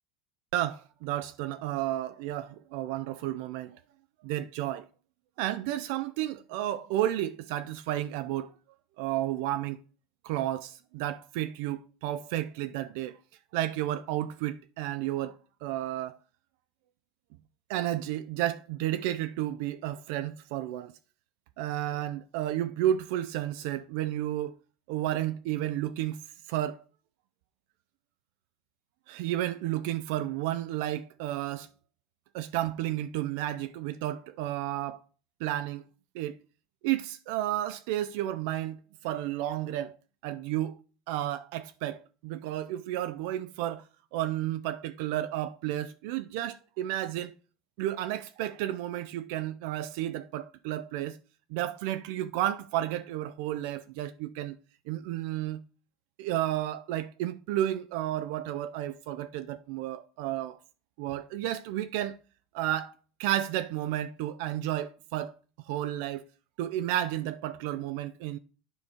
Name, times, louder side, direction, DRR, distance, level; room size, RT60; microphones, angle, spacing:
voice 1, 0.5-3.8 4.2-4.9 5.4-8.5 9.0-9.8 10.2-13.2 13.5-16.2 17.7-20.9 21.6-24.5 24.9-26.2 26.5-26.8 29.1-31.7 32.3-35.0 35.4-35.8 36.1-36.4 36.8-39.9 40.2-40.8 41.1-43.8 44.1-47.3 47.8-51.2 51.5-54.6 54.9-55.6 56.2-60.6 61.0-62.2 62.5-62.9 63.2-65.4 65.7-66.2 66.6-68.4, right 13 dB, 65° right, 0.4 m, -32 dB
9.7 x 4.9 x 4.4 m
cardioid pair, 175°, 0 cm